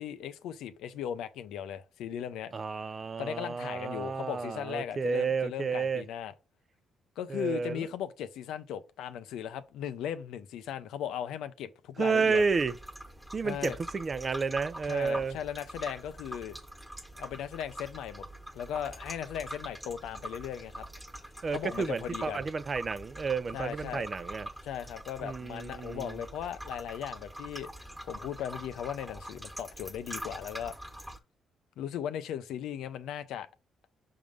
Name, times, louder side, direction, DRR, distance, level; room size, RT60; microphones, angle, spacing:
voice 1, 0.0-2.6 3.2-6.3 7.2-12.4 13.4-13.8 14.9-16.6 17.2-18.2 18.5-20.8 21.5-22.4 23.5-24.1 24.6-30.7 31.8-33.5, left 9 dB, 85° left, 0.6 m, -37 dB
voice 2, 2.5-6.0 7.3-7.8 12.0-12.7 13.3-15.4 21.4-24.5 25.2-26.2, right 5 dB, 35° right, 0.5 m, -31 dB
sound 1, 12.3-31.2, right 1 dB, 5° right, 1.4 m, -44 dB
6.2 x 3.7 x 5.1 m
cardioid pair, 90°, 0 cm